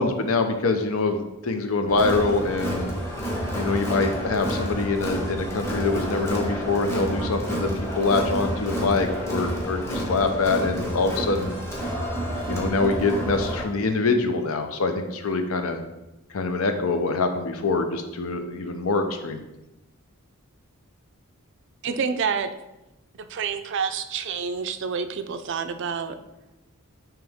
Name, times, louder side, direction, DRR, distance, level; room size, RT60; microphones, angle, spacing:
voice 1, 0.0-2.9 3.5-11.5 12.5-15.8 16.3-19.4, left 3 dB, 75° left, 7 dB, 0.6 m, -24 dB
Crowd, 1.9-13.6, equal, 10° left, 0.9 m, -29 dB
voice 2, 21.8-22.5 23.2-26.1, right 6 dB, 55° right, 10 dB, 0.4 m, -28 dB
8.8 x 3.0 x 3.5 m, 0.96 s
head